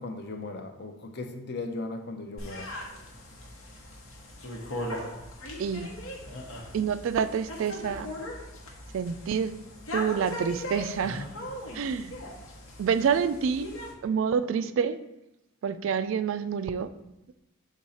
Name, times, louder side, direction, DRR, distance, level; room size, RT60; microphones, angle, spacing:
voice 1, 0.0-2.7, left 3 dB, 50° left, 0.6 m, -37 dB
sound 1, 2.4-13.9, left 1 dB, 75° left, 1.1 m, -39 dB
voice 2, 6.7-8.1 8.9-9.6 9.9-11.3 11.7-12.1 12.8-13.7 14.0-15.0 15.6-16.9, right 6 dB, 60° right, 0.3 m, -27 dB
6.3 x 3.9 x 4.1 m
head